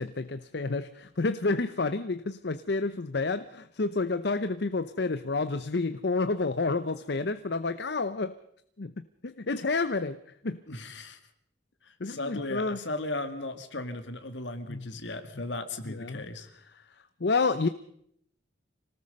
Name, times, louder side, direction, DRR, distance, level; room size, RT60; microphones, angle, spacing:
voice 1, 0.0-8.4 8.8-8.9 9.2-10.2 10.4-10.6 12.0-12.8 14.7-14.9 15.8-16.2 17.2-17.7, left 3 dB, 60° left, 12 dB, 0.7 m, -29 dB
voice 2, 10.7-11.2 11.8-16.5, left 2 dB, 75° left, 9 dB, 2.3 m, -36 dB
26.0 x 19.0 x 5.4 m, 0.70 s
head